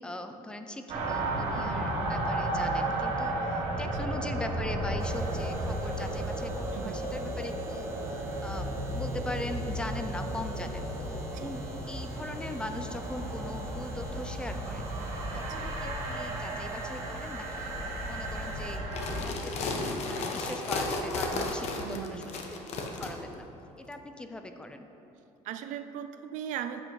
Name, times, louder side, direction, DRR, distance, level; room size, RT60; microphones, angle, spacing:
voice 1, 0.0-7.9 8.2-14.8 15.3-17.7 18.0-23.5 23.8-24.9, left 1 dB, 5° left, 7 dB, 0.4 m, -40 dB
sound 1, 0.9-19.2, right 1 dB, 50° right, 1.5 m, -33 dB
voice 2, 1.5-1.9 3.8-4.1 6.7-7.0 11.3-11.5 15.3-15.7 21.8-22.4 25.4-26.8, right 9 dB, 65° right, 9 dB, 0.5 m, -39 dB
sound 2, 5.0-18.8, right 2 dB, 20° right, 0.8 m, -53 dB
sound 3, 18.8-23.1, left 3 dB, 50° left, 0.9 m, -33 dB
8.5 x 7.4 x 3.2 m, 3.0 s
cardioid pair, 140°, 14 cm